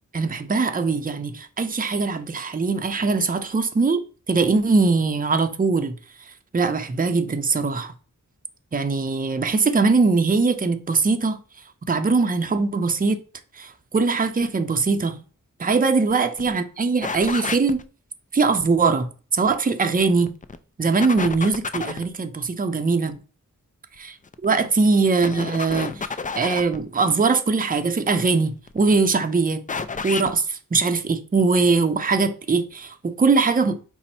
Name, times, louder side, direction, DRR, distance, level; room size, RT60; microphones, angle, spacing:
voice 1, 0.1-4.0 4.3-5.9 6.5-7.9 8.7-11.4 11.9-13.2 13.6-15.2 15.6-17.8 18.3-20.3 20.8-23.2 24.4-26.1 26.3-29.6 30.0-33.8, right 4 dB, 25° right, 0.6 m, -21 dB
sound 1, 16.1-16.2 16.4-16.5 17.0-17.8 20.0-20.6 21.0-22.1 24.3-24.6 25.2-26.8 28.5-29.0 29.7-30.3, left 4 dB, 25° left, 0.3 m, -30 dB
5.2 x 2.1 x 4.3 m
wide cardioid pair, 60°, 33 cm